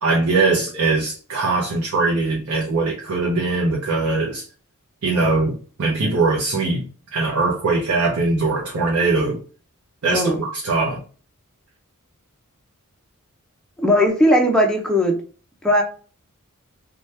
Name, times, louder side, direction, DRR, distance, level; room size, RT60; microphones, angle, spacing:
voice 1, 0.0-4.4 5.0-6.8 7.1-9.4 10.0-11.0, right 3 dB, 70° right, -3 dB, 0.7 m, -21 dB
voice 2, 13.8-15.2 15.6-15.8, equal, 5° left, 0 dB, 0.5 m, -17 dB
2.8 x 2.3 x 3.2 m, 0.39 s
head